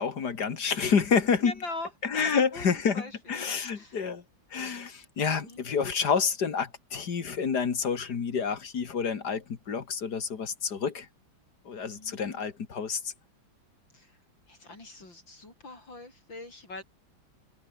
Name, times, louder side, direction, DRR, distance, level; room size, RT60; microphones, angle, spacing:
voice 1, 0.0-1.5 2.0-3.0 3.3-4.2 4.5-11.1 11.7-13.1, left 6 dB, 55° left, 2.4 m, -28 dB
voice 2, 1.4-2.7 2.9-4.1 5.2-5.6 11.9-12.5 13.9-14.2 14.5-16.8, left 2 dB, 75° left, 8.1 m, -42 dB
omnidirectional pair, 2.1 m